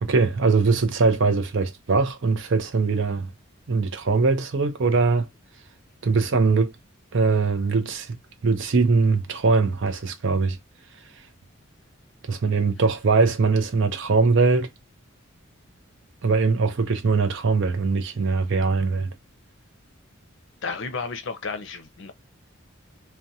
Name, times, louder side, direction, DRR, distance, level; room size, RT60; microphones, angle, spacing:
voice 1, 0.0-3.3 3.7-5.3 6.0-6.7 7.1-8.2 8.4-10.6 12.2-14.7 16.2-19.1, right 4 dB, 60° right, 0.5 m, -21 dB
voice 2, 20.6-22.1, left 4 dB, 60° left, 0.6 m, -32 dB
2.4 x 2.2 x 2.7 m
head